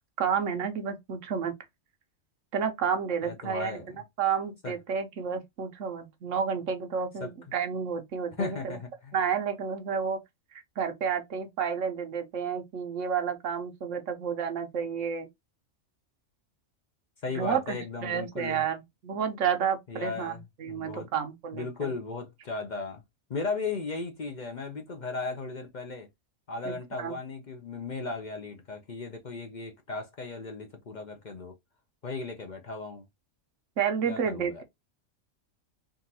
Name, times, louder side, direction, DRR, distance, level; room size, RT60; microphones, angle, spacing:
voice 1, 0.2-1.5 2.5-3.8 4.2-8.8 9.1-10.2 10.8-15.3 17.3-21.9 26.6-27.1 33.8-34.6, right 7 dB, 80° right, 1.2 m, -30 dB
voice 2, 3.2-4.0 4.6-4.8 7.2-7.3 8.4-9.1 17.2-18.7 19.9-21.1 21.5-23.0 23.3-26.1 26.5-31.6 32.0-33.0 34.1-34.6, left 4 dB, 45° left, 0.7 m, -36 dB
3.8 x 2.4 x 2.7 m
omnidirectional pair, 1.3 m